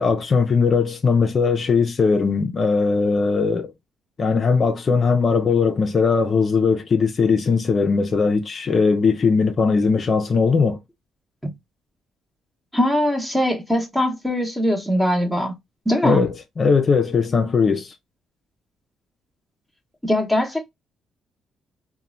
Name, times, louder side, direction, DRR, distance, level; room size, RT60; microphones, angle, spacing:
voice 1, 0.0-3.7 4.2-10.8 16.0-17.9, left 5 dB, 45° left, 0.4 m, -19 dB
voice 2, 12.7-15.5 15.9-16.3 20.0-20.7, equal, ahead, 0.8 m, -21 dB
2.9 x 2.1 x 2.4 m
cardioid pair, 90°, 0 cm